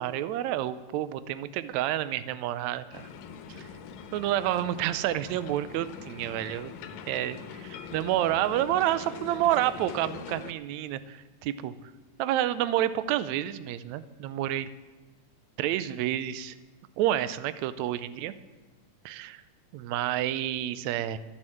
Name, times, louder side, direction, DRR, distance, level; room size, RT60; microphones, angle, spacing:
voice 1, 0.0-3.0 4.1-6.7 7.1-11.7 12.2-14.7 15.6-16.6 17.0-18.3 19.1-19.4 19.7-21.2, right 13 dB, 75° right, 14 dB, 1.9 m, -29 dB
sound 1, 2.9-10.5, left 6 dB, 75° left, 2.1 m, -43 dB
13.5 x 11.0 x 7.7 m, 1.2 s
omnidirectional pair, 3.6 m